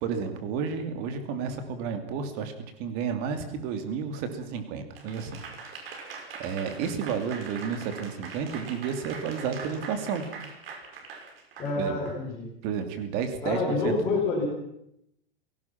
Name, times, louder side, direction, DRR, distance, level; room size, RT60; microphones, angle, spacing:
voice 1, 0.0-2.5 2.8-5.4 6.0-10.3 11.8-12.0 12.6-14.2, right 6 dB, 30° right, 8 dB, 2.7 m, -31 dB
Applause / Crowd, 4.9-12.2, right 5 dB, 75° right, 6.0 m, -42 dB
voice 2, 11.6-12.5 13.4-14.4, left 3 dB, 15° left, -5 dB, 5.8 m, -27 dB
30.0 x 18.0 x 6.0 m, 0.79 s
supercardioid pair, 175°, 29 cm